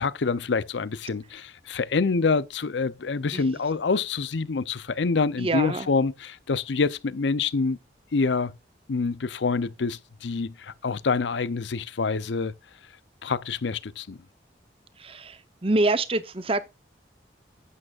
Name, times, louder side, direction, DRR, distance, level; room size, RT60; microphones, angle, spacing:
voice 1, 0.0-7.8 8.1-8.5 8.9-12.5 13.2-14.2, left 4 dB, 85° left, 0.6 m, -26 dB
voice 2, 5.4-5.9 15.0-16.7, right 2 dB, 30° right, 0.8 m, -26 dB
11.0 x 8.7 x 2.4 m
head